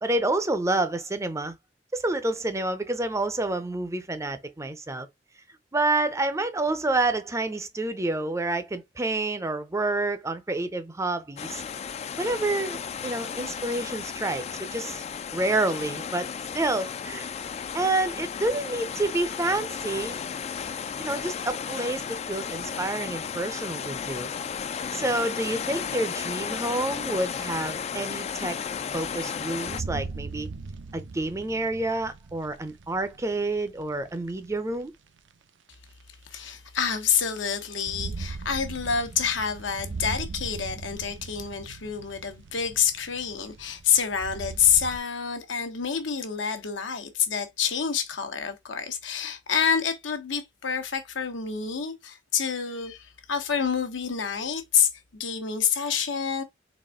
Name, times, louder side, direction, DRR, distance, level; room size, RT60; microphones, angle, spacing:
voice 1, 0.0-1.6 1.9-5.1 5.7-11.6 12.2-15.0 15.3-16.3 16.5-17.3 17.7-20.2 21.0-24.3 24.9-28.6 28.9-30.5 30.9-34.9, right 2 dB, 15° right, 0.5 m, -28 dB
sound 1, 11.4-29.8, left 7 dB, 35° left, 0.3 m, -34 dB
sound 2, 27.4-27.5 28.2-28.3 28.9-29.0 29.7-34.8 35.7-35.8 37.6-45.0, right 3 dB, 75° right, 0.6 m, -39 dB
voice 2, 36.3-56.4, left 7 dB, 85° left, 1.1 m, -27 dB
4.1 x 3.5 x 3.6 m
head